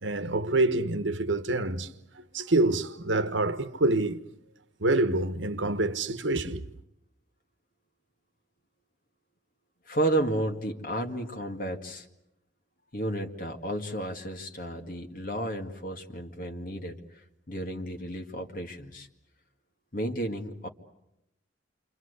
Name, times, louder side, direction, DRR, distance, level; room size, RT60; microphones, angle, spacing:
voice 1, 0.0-4.2 4.8-6.7, right 2 dB, 75° right, 1.3 m, -27 dB
voice 2, 9.9-12.1 12.9-19.1 19.9-20.7, right 1 dB, 50° left, 2.1 m, -32 dB
29.0 x 25.0 x 8.2 m
head